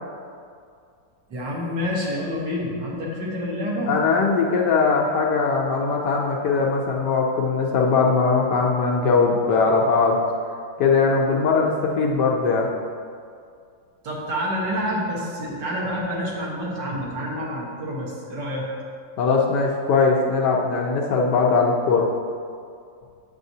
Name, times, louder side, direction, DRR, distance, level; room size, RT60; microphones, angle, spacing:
voice 1, 1.3-3.9 14.0-18.7, equal, 60° right, -3 dB, 1.8 m, -28 dB
voice 2, 3.9-10.2 10.8-12.7 19.2-22.1, left 4 dB, 70° left, -1 dB, 1.1 m, -20 dB
7.5 x 7.1 x 2.7 m, 2.3 s
omnidirectional pair, 2.2 m